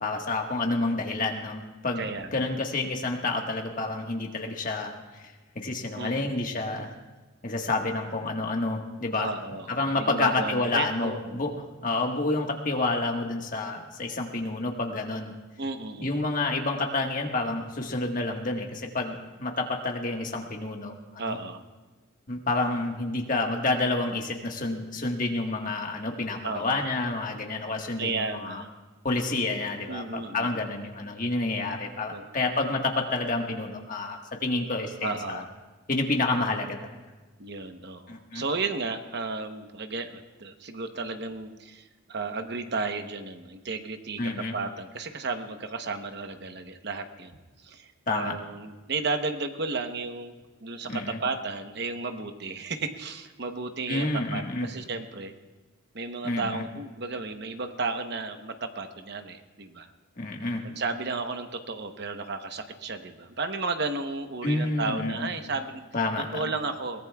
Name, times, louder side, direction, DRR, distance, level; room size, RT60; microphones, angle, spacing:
voice 1, 0.0-4.9 5.5-6.9 7.4-9.3 9.7-11.5 11.8-15.3 16.0-21.4 22.3-28.6 29.0-35.4 35.9-36.8 38.1-38.4 44.2-44.5 48.1-48.3 50.8-51.2 53.9-54.7 56.2-56.6 60.2-60.6 64.4-65.3 65.9-66.4, left 2 dB, 40° left, 2 dB, 1.5 m, -29 dB
voice 2, 2.0-2.5 5.9-6.4 9.1-11.4 15.6-16.2 21.2-21.6 26.4-26.8 28.0-28.7 29.9-30.6 32.1-32.2 35.0-35.5 37.4-47.4 47.6-50.3 50.6-54.1 54.3-55.3 55.9-59.9 60.6-65.8 66.3-67.1, right 3 dB, 55° right, 7 dB, 0.9 m, -33 dB
22.0 x 18.0 x 2.3 m, 1.2 s
head